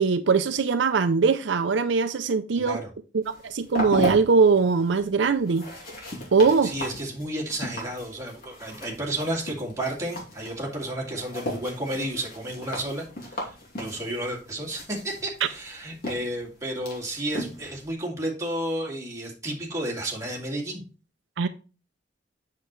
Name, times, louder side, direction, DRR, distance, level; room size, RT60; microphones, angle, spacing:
voice 1, 0.0-2.8 3.1-5.6 6.3-6.7 21.4-21.5, right 5 dB, 75° right, 0.5 m, -21 dB
sound 1, 3.2-17.9, left 1 dB, 55° left, 2.7 m, -37 dB
voice 2, 6.6-20.8, right 1 dB, 15° right, 2.3 m, -32 dB
7.9 x 6.7 x 3.1 m
head